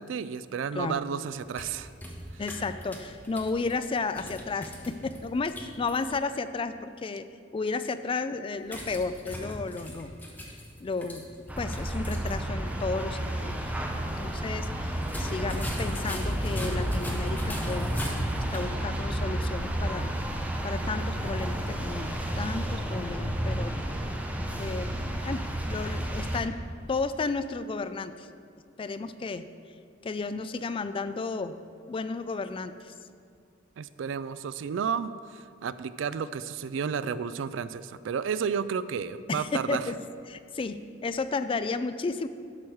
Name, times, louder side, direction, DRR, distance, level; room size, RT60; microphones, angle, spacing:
voice 1, 0.0-1.9 33.8-39.8, right 6 dB, 75° right, 15 dB, 0.3 m, -32 dB
sound 1, 1.3-6.0 8.6-12.4 12.7-12.8 15.0-18.7, equal, 10° left, 1.1 m, -39 dB
voice 2, 2.4-7.3 7.5-10.1 10.5-10.6 10.8-13.7 14.2-18.2 18.5-20.1 20.6-24.1 24.6-26.6 26.9-28.3 28.8-29.5 30.0-31.6 31.9-32.9 39.3-40.0 40.3-42.3, left 4 dB, 30° left, 11 dB, 0.3 m, -33 dB
sound 2, 11.5-26.4, right 1 dB, 10° right, 0.7 m, -31 dB
11.5 x 6.2 x 4.7 m, 2.2 s
head